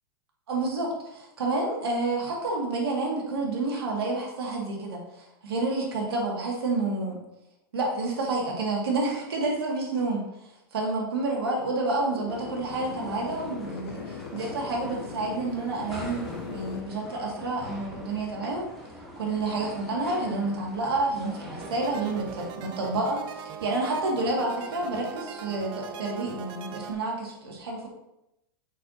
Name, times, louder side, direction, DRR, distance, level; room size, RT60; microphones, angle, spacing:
voice 1, 0.5-7.2 7.7-18.7 19.2-27.9, right 2 dB, 85° right, -2 dB, 2.1 m, -29 dB
sound 1, 11.8-16.8, left 6 dB, 75° left, 0.7 m, -41 dB
sound 2, 12.3-22.5, left 1 dB, ahead, 1.6 m, -43 dB
sound 3, 21.6-26.9, right 6 dB, 40° right, 0.6 m, -40 dB
6.3 x 5.9 x 2.8 m, 0.86 s
hypercardioid pair, 125°, 13 cm